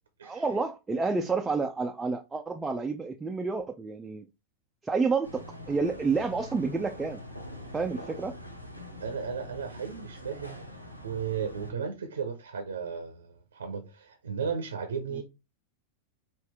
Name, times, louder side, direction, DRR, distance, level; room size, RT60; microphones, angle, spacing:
voice 1, 0.2-4.3 4.8-7.2 7.7-8.3 15.1-15.2, right 4 dB, 10° right, 0.4 m, -29 dB
sound 1, 5.2-11.7, equal, 90° left, 0.8 m, -44 dB
voice 2, 9.0-10.6 11.0-15.2, right 6 dB, 70° right, 0.7 m, -35 dB
5.5 x 2.5 x 3.4 m
figure-of-eight pair, 90°, 0 cm